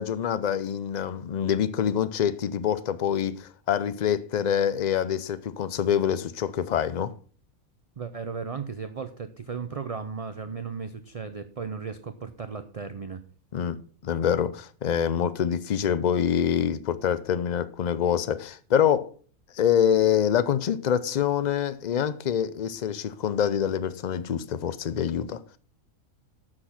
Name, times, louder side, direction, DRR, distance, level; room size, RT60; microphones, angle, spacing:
voice 1, 0.0-7.1 13.5-13.8 14.0-19.1 19.5-25.4, left 8 dB, 65° left, 0.4 m, -25 dB
voice 2, 8.0-13.2, right 5 dB, 60° right, 0.3 m, -35 dB
7.5 x 6.5 x 5.8 m
omnidirectional pair, 1.4 m